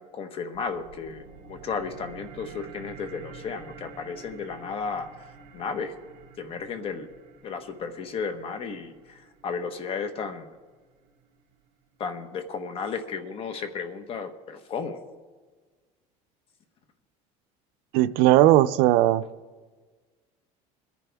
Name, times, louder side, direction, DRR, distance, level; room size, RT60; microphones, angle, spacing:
voice 1, 0.0-5.3 5.5-5.9 6.4-7.1 7.4-10.5 12.0-15.0, left 5 dB, 40° left, 9 dB, 1.1 m, -34 dB
sound 1, 0.5-11.5, right 6 dB, 55° right, 3.1 m, -49 dB
voice 2, 17.9-19.2, right 14 dB, 80° right, 14 dB, 0.5 m, -18 dB
22.0 x 10.5 x 3.5 m, 1.4 s
cardioid pair, 155°, 15 cm